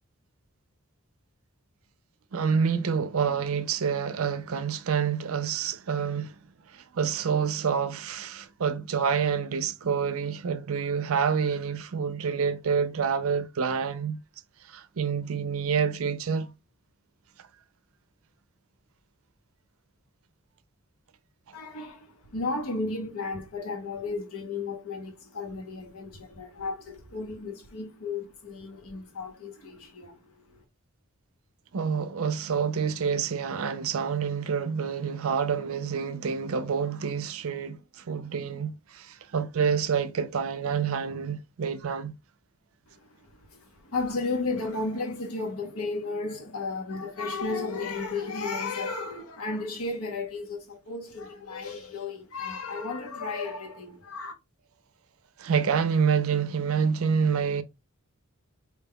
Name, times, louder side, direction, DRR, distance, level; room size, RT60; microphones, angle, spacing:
voice 1, 2.3-6.4 6.7-14.2 14.6-16.5 31.7-42.1 55.4-57.6, right 6 dB, 70° right, 0.4 m, -27 dB
voice 2, 21.5-30.6 42.9-54.3, left 3 dB, 80° left, 0.9 m, -34 dB
4.4 x 2.2 x 3.5 m
head